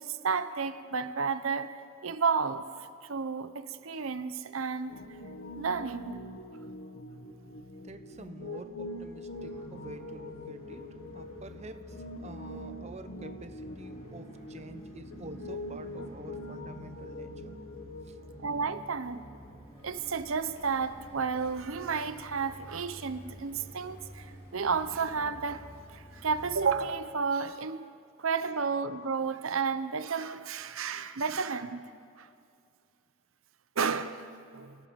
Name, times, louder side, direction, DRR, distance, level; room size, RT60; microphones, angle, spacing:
voice 1, 0.0-2.7 3.1-5.0 5.6-6.2 18.4-19.2 19.8-24.3 24.5-25.7 25.9-27.9 28.2-31.9 32.2-32.3 33.8-34.7, right 5 dB, 80° right, 11 dB, 0.8 m, -32 dB
Piano, 4.9-18.6, left 1 dB, 70° left, 1.7 m, -44 dB
voice 2, 7.8-10.9 11.1-17.6 18.1-18.2, right 1 dB, 30° right, 9 dB, 0.9 m, -47 dB
sound 1, 9.3-26.9, equal, 25° left, 5.7 m, -49 dB
30.0 x 17.5 x 5.2 m, 2.3 s
head